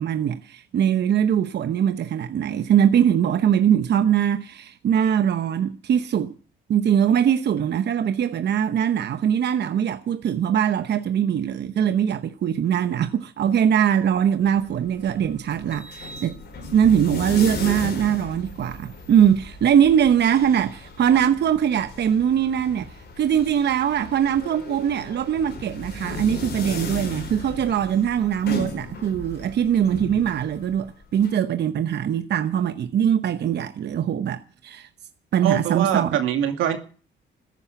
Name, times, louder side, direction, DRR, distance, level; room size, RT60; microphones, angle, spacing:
voice 1, 0.0-6.3 6.7-16.4 16.7-34.9 35.3-36.1, right 9 dB, 60° right, 0.9 m, -21 dB
sound 1, 14.2-31.3, left 3 dB, 60° left, 5.1 m, -36 dB
voice 2, 35.4-36.8, right 10 dB, 90° right, 2.4 m, -23 dB
14.5 x 10.5 x 9.0 m
cardioid pair, 90°, 20 cm